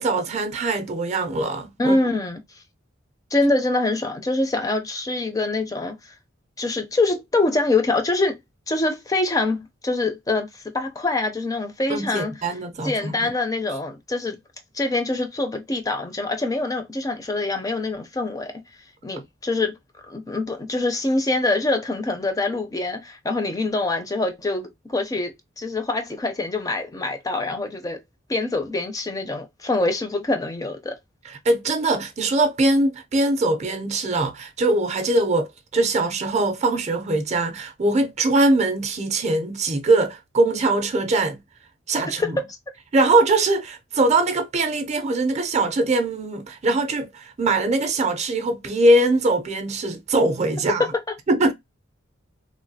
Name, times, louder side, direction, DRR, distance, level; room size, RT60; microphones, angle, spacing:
voice 1, 0.0-2.0 11.9-13.3 31.2-41.4 41.9-42.4 42.9-50.8 51.3-51.5, right 2 dB, 35° right, 0.5 m, -22 dB
voice 2, 1.8-2.4 3.3-6.0 6.6-8.4 8.7-12.3 12.8-14.4 14.7-18.5 19.0-19.8 20.1-28.0 28.3-31.0 42.2-42.4 50.8-51.0, left 2 dB, 20° left, 0.4 m, -24 dB
3.1 x 2.3 x 2.6 m
head